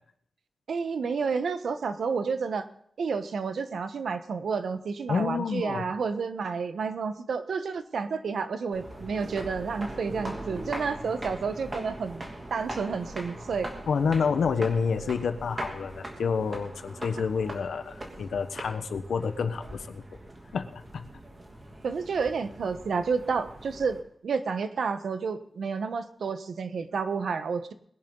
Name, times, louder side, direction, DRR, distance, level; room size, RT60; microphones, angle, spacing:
voice 1, 0.7-2.7 3.0-12.2 12.5-13.7 21.8-24.0 24.2-27.7, right 5 dB, 80° right, 10 dB, 1.2 m, -30 dB
voice 2, 5.1-5.9 13.9-20.0 20.5-21.1, left 5 dB, 90° left, 10 dB, 1.2 m, -29 dB
sound 1, 8.7-24.0, right 1 dB, 25° right, 2.9 m, -41 dB
21.0 x 11.0 x 4.0 m, 0.68 s
wide cardioid pair, 130°, 0 cm